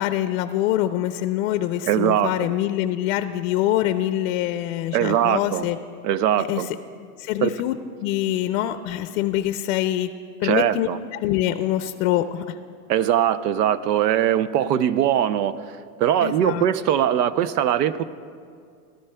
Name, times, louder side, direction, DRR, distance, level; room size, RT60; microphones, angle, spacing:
voice 1, 0.0-5.8 6.4-6.7 7.2-7.7 8.0-10.1 10.4-12.6 16.2-16.7, left 13 dB, 55° left, 10 dB, 0.5 m, -24 dB
voice 2, 1.9-2.5 4.9-5.7 6.0-6.7 7.4-7.5 10.4-11.0 12.9-15.6 16.0-18.0, right 10 dB, 80° right, 15 dB, 0.7 m, -21 dB
18.5 x 13.0 x 2.2 m, 2.2 s
supercardioid pair, 130°, 47 cm